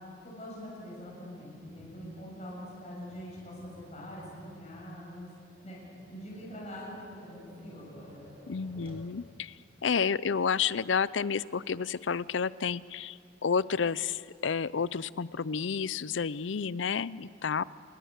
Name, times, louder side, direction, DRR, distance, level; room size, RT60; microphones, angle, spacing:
voice 1, 0.0-5.3 5.6-6.9 7.2-8.2, equal, 35° left, -4 dB, 6.9 m, -44 dB
Tap, 1.6-9.1, left 1 dB, 30° right, 5.5 m, -56 dB
voice 2, 8.5-17.6, left 6 dB, 80° left, 19 dB, 0.6 m, -30 dB
28.0 x 21.5 x 8.2 m, 2.4 s
head